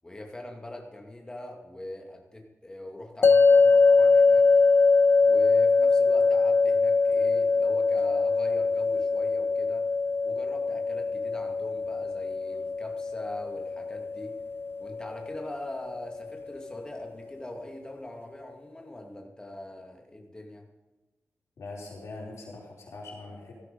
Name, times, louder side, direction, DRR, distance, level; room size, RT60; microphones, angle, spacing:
voice 1, 0.0-4.5 5.2-9.8 10.2-14.3 14.8-20.7, left 1 dB, 15° left, 2 dB, 2.3 m, -42 dB
sound 1, 3.2-16.3, left 4 dB, 50° left, 0.5 m, -23 dB
voice 2, 21.6-23.5, left 2 dB, 90° left, -3 dB, 5.0 m, -42 dB
16.5 x 13.0 x 5.4 m, 1.2 s
wide cardioid pair, 155°, 5 cm